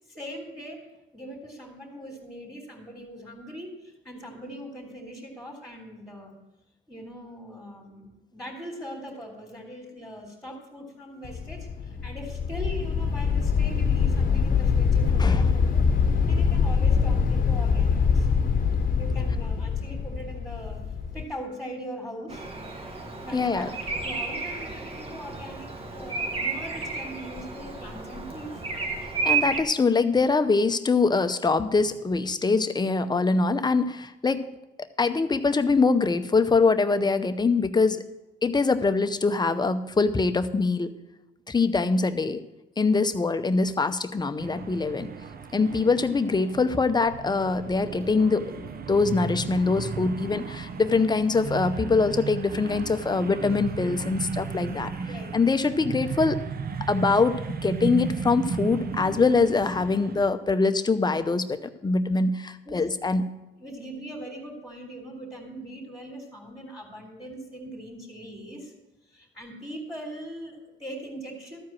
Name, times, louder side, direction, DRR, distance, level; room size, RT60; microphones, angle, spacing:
voice 1, 0.1-0.9 1.1-6.3 6.9-15.8 16.3-18.3 19.0-20.9 21.1-22.5 23.2-28.6 55.0-55.4 62.6-62.9 63.5-68.7 69.1-71.6, equal, ahead, -4 dB, 2.8 m, -40 dB
sound 1, 11.2-21.2, left 6 dB, 45° left, 1.0 m, -24 dB
voice 2, 15.2-15.5 23.3-23.7 29.2-34.4 35.0-38.0 38.4-40.9 41.5-42.4 42.8-45.1 45.5-54.9 55.3-56.4 56.8-63.3, left 4 dB, 20° left, 10 dB, 0.7 m, -23 dB
Bird vocalization bird call bird song, 22.3-29.6, right 4 dB, 30° right, 1.4 m, -32 dB
sound 2, 44.4-60.3, right 5 dB, 50° right, 0.8 m, -35 dB
13.5 x 4.7 x 7.4 m, 0.96 s
cardioid pair, 90°, 20 cm